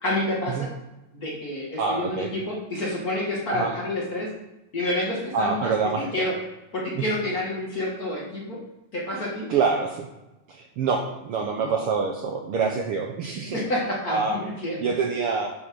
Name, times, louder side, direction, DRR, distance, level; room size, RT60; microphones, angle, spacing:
voice 1, 0.0-0.7 1.1-4.3 4.7-6.3 6.7-8.6 8.9-9.5 11.6-11.9 13.4-14.8, left 1 dB, 35° left, -3 dB, 2.2 m, -29 dB
voice 2, 1.8-2.3 3.5-3.7 5.3-6.1 9.5-10.1 10.5-13.6 14.1-14.4 14.8-15.5, right 5 dB, 65° right, 2 dB, 1.5 m, -26 dB
9.0 x 6.4 x 6.2 m, 0.98 s
omnidirectional pair, 3.3 m